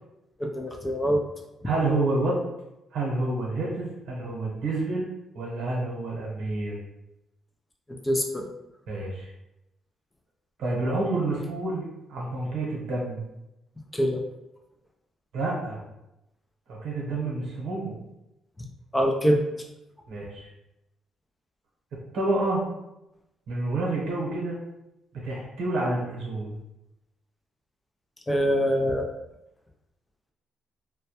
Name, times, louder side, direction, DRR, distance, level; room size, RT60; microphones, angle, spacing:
voice 1, 0.4-1.2 7.9-8.5 13.9-14.2 18.9-19.4 28.3-29.1, equal, 15° left, 2 dB, 0.4 m, -24 dB
voice 2, 1.6-2.4 2.9-5.1 5.3-6.8 8.9-9.3 10.6-11.8 12.1-13.3 15.3-15.8 16.7-18.0 20.1-20.4 22.1-22.6 23.5-24.6 25.2-26.6, right 2 dB, 80° right, -4 dB, 0.8 m, -28 dB
2.2 x 2.0 x 2.8 m, 0.90 s
cardioid pair, 90°, 0 cm